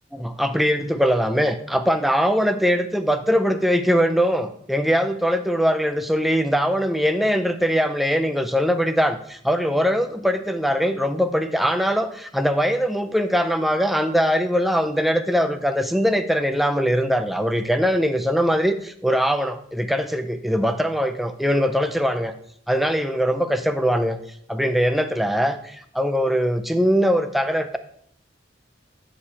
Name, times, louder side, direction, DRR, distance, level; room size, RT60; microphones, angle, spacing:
voice 1, 0.1-22.3 22.7-24.2 24.5-27.8, equal, ahead, 7 dB, 0.5 m, -21 dB
7.8 x 6.5 x 4.2 m, 0.65 s
head